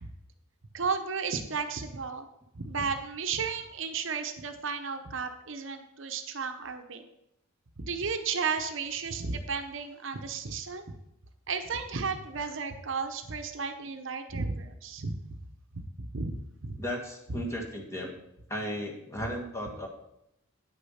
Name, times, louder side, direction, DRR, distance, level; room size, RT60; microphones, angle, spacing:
voice 1, 0.7-2.3 2.5-7.1 7.8-10.8 11.5-15.1 16.0-16.4 16.6-16.8 17.3-17.4, right 5 dB, 60° right, 7 dB, 0.8 m, -33 dB
voice 2, 16.8-18.1 18.5-19.9, equal, 15° left, -1 dB, 1.7 m, -35 dB
9.3 x 6.6 x 5.6 m, 0.83 s
head